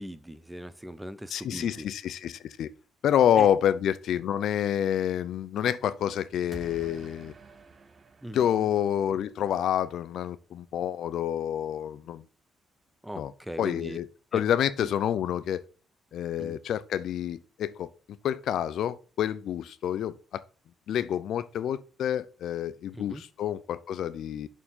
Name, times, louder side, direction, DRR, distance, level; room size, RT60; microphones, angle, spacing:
voice 1, 0.0-1.9 3.4-3.5 8.2-8.4 13.0-14.0 14.3-14.4 14.8-14.9 16.4-16.6 22.9-23.2, right 1 dB, 5° right, 0.7 m, -39 dB
voice 2, 1.3-2.7 3.0-7.3 8.3-12.2 13.2-13.3 13.6-14.1 14.3-15.6 16.1-17.9 18.2-20.4 20.9-24.5, left 10 dB, 75° left, 0.5 m, -28 dB
sound 1, 6.5-9.4, right 4 dB, 40° right, 1.0 m, -49 dB
6.8 x 4.5 x 5.5 m
cardioid pair, 90°, 0 cm